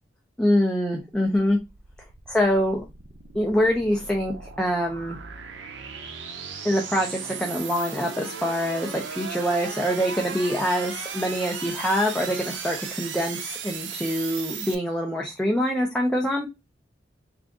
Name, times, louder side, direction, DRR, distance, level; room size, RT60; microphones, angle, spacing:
voice 1, 0.4-1.6 2.3-2.9 3.3-5.2 6.6-16.5, equal, 5° left, 0 dB, 0.6 m, -25 dB
sound 1, 1.1-14.8, right 6 dB, 70° right, 0.6 m, -36 dB
3.5 x 2.5 x 3.6 m, 0.22 s
head